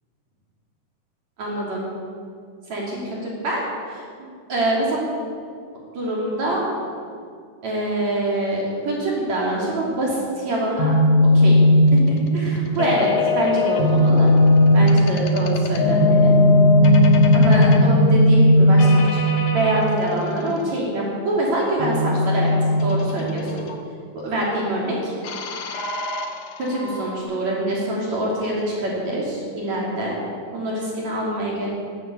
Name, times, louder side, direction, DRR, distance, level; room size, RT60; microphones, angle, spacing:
voice 1, 1.4-1.9 2.7-5.0 5.9-6.6 7.6-10.9 11.3-11.6 11.9-14.3 14.7-16.3 17.3-18.9 19.5-22.5 22.8-23.6 24.1-25.1 26.7-30.2 30.5-31.7, right 1 dB, 55° right, -4 dB, 4.2 m, -25 dB
sound 1, 10.8-19.8 21.8-23.7 25.2-27.2, left 1 dB, 90° left, 3.1 m, -17 dB
15.0 x 11.5 x 8.3 m, 2.2 s
omnidirectional pair, 3.8 m